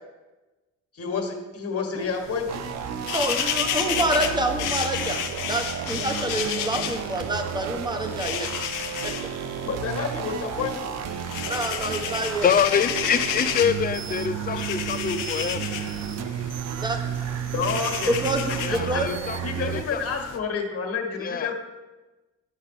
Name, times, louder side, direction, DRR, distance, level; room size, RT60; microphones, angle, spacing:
voice 1, 0.9-2.6 9.6-10.9 17.5-18.2 18.7-19.0 19.4-21.5, left 5 dB, 50° left, 3 dB, 1.6 m, -29 dB
sound 1, 2.1-20.4, left 9 dB, 90° left, 0.7 m, -32 dB
sound 2, 2.5-19.8, right 9 dB, 60° right, 0.4 m, -32 dB
voice 2, 3.1-5.2 5.5-8.5 11.4-12.5 16.8-17.0 18.2-19.1, right 1 dB, 15° right, 4 dB, 1.2 m, -27 dB
voice 3, 12.4-15.7 18.6-20.0 21.2-21.5, left 7 dB, 30° left, 13 dB, 0.5 m, -25 dB
10.0 x 5.6 x 3.6 m, 1.1 s
cardioid pair, 90°, 30 cm